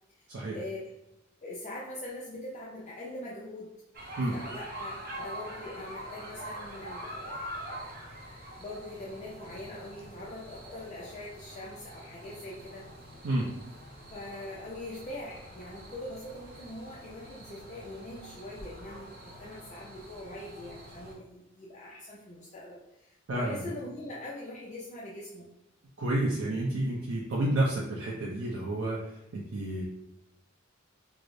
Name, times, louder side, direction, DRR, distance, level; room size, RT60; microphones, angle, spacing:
voice 1, 0.2-0.9 1.4-3.7 4.3-7.8 8.6-12.9 14.1-25.5, left 1 dB, 35° left, -5 dB, 0.4 m, -43 dB
sound 1, 3.9-21.1, equal, 45° right, 0.6 m, -45 dB
voice 2, 26.0-29.0 29.3-29.8, right 1 dB, 85° right, -4 dB, 0.5 m, -30 dB
4.7 x 2.0 x 2.6 m, 0.88 s
head